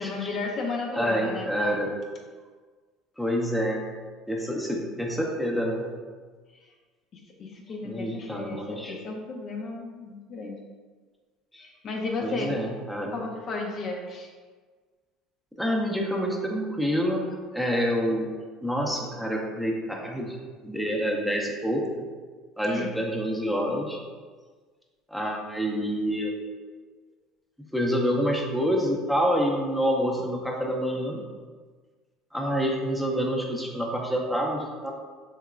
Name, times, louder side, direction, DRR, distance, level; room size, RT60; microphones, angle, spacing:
voice 1, 0.0-1.9 6.5-6.7 7.1-10.6 11.5-12.6 13.1-14.3 22.6-22.9, left 3 dB, 50° left, 0 dB, 0.5 m, -34 dB
voice 2, 0.9-1.9 3.2-3.8 4.3-5.9 7.8-9.0 12.2-13.1 15.6-17.2 17.5-18.3 18.6-20.4 20.6-21.8 22.6-24.0 25.1-26.4 27.7-31.2 32.3-34.9, equal, ahead, -1 dB, 0.5 m, -27 dB
3.0 x 2.8 x 2.3 m, 1.5 s
hypercardioid pair, 80°, 0 cm